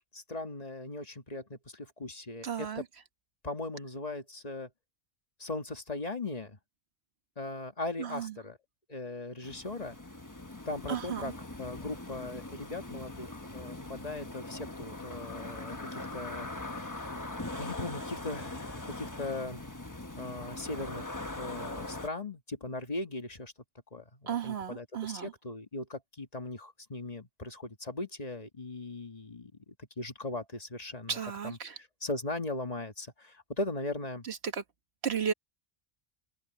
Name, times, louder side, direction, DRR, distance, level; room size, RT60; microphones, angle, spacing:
voice 1, 0.1-2.8 3.4-4.7 5.4-6.6 7.4-8.6 8.9-10.0 10.7-11.3 11.6-17.1 17.6-19.6 20.1-23.5 23.9-31.2 31.4-34.2, left 2 dB, 40° left, 1.7 m, -39 dB
voice 2, 2.4-2.8 8.0-8.3 10.9-11.3 24.3-25.3 31.1-31.8 34.2-34.6 35.0-35.3, right 7 dB, 90° right, 1.5 m, -34 dB
sound 1, 9.4-22.1, left 2 dB, 20° left, 1.3 m, -41 dB
open air
omnidirectional pair, 1.0 m